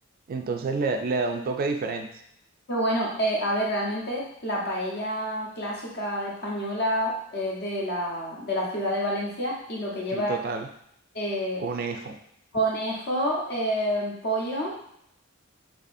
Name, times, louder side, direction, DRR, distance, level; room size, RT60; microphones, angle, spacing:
voice 1, 0.3-2.1 10.1-10.7 11.6-12.2, right 4 dB, 45° right, 5 dB, 0.3 m, -28 dB
voice 2, 2.7-10.4 11.1-11.6 12.5-14.8, equal, 50° left, -3 dB, 1.0 m, -28 dB
4.0 x 2.7 x 2.5 m, 0.74 s
head